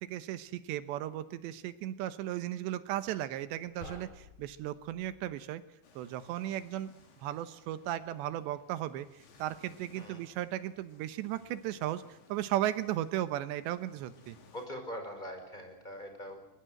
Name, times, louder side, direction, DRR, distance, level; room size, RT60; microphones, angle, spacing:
voice 1, 0.0-5.6 6.0-6.9 7.2-14.4, right 13 dB, 80° right, 13 dB, 3.2 m, -36 dB
sound 1, 3.7-5.3, left 2 dB, 45° left, 6.0 m, -51 dB
sound 2, 5.8-14.7, left 4 dB, 85° left, 6.2 m, -62 dB
voice 2, 14.5-16.4, equal, 10° left, 5 dB, 5.0 m, -42 dB
23.0 x 22.0 x 7.9 m, 0.84 s
omnidirectional pair, 5.1 m